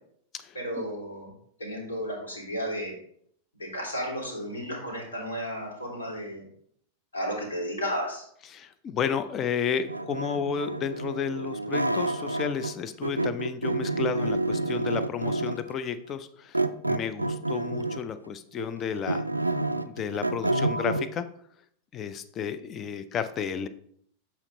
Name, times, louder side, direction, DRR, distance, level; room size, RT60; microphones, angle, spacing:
voice 1, 0.5-1.3 1.6-2.9 3.6-6.4 7.1-8.2, equal, 80° left, -3 dB, 2.8 m, -33 dB
voice 2, 8.5-16.6 16.9-19.2 19.8-21.3 21.9-23.7, left 7 dB, 30° left, 12 dB, 0.5 m, -32 dB
sound 1, 9.9-12.8 13.0-15.7 16.5-18.1 18.6-21.1, right 2 dB, 85° right, 0.3 m, -29 dB
7.3 x 4.3 x 3.9 m, 0.66 s
figure-of-eight pair, 90°, 0 cm